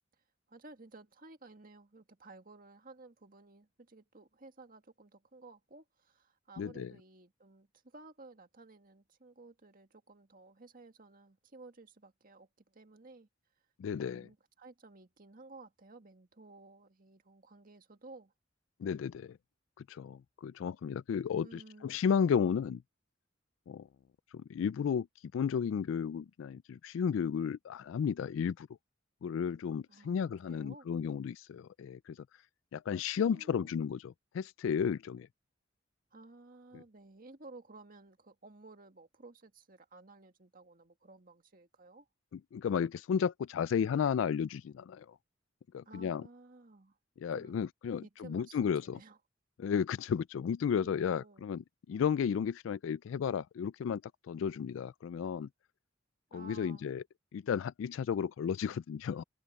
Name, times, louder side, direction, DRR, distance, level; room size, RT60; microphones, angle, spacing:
voice 1, 0.5-13.3 14.0-18.3 21.4-22.0 29.9-30.9 33.2-33.7 36.1-42.1 45.9-47.0 47.3-47.6 48.0-49.2 50.7-51.5 56.3-56.9, right 3 dB, 45° right, 1.9 m, -55 dB
voice 2, 6.6-6.9 13.8-14.3 18.8-19.4 19.8-22.8 23.7-23.9 24.3-25.1 25.3-28.7 29.2-32.3 32.7-35.3 36.7-36.8 42.3-45.2 45.7-46.2 47.2-49.0 49.6-54.0 54.3-55.5 56.3-57.0 57.3-59.2, left 7 dB, 90° left, 0.3 m, -33 dB
head